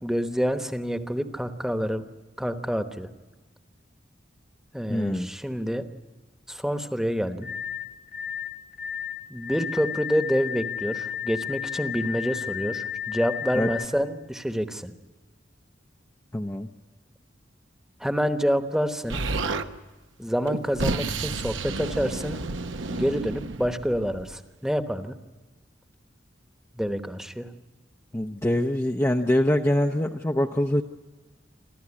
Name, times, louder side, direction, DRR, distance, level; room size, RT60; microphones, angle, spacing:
voice 1, 0.0-2.0 2.4-3.1 4.7-5.8 6.5-7.5 9.3-14.9 18.0-19.2 20.2-22.4 22.9-25.2 26.7-27.5, equal, 5° right, 8 dB, 1.1 m, -27 dB
voice 2, 4.9-5.3 13.5-13.7 16.3-16.7 28.1-30.8, left 1 dB, 15° left, 2 dB, 0.6 m, -24 dB
sound 1, 7.4-13.9, left 9 dB, 40° left, 1.4 m, -33 dB
Explosion, 19.1-19.7 20.5-24.3, right 3 dB, 85° right, 1.0 m, -31 dB
27.0 x 14.0 x 9.8 m, 1.3 s
head